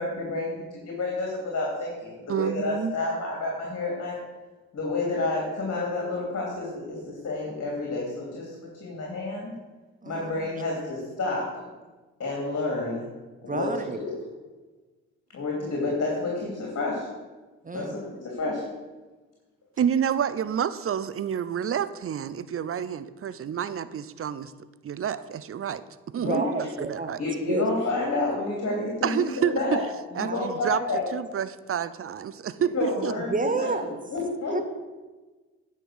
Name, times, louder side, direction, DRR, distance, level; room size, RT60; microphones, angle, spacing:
voice 1, 0.0-4.2 4.7-9.5 10.0-11.7 12.2-13.1 13.4-13.7 14.0-14.1 15.3-17.1 17.7-18.6 26.2-26.4 27.2-29.8 30.1-31.1 32.7-33.7 34.1-34.6, left 2 dB, 50° left, -2 dB, 2.8 m, -29 dB
voice 2, 2.3-3.0 19.8-24.5 24.8-25.8 26.1-27.2 29.0-29.8 30.1-30.8 31.1-33.1, right 8 dB, 40° right, 15 dB, 0.6 m, -29 dB
voice 3, 13.5-14.0 17.6-17.9 26.2-27.1 27.5-27.6 30.2-30.4 30.7-30.8 33.3-33.9 34.5-34.6, right 3 dB, 25° right, 9 dB, 1.2 m, -30 dB
10.0 x 5.8 x 6.3 m, 1.3 s
hypercardioid pair, 45°, 33 cm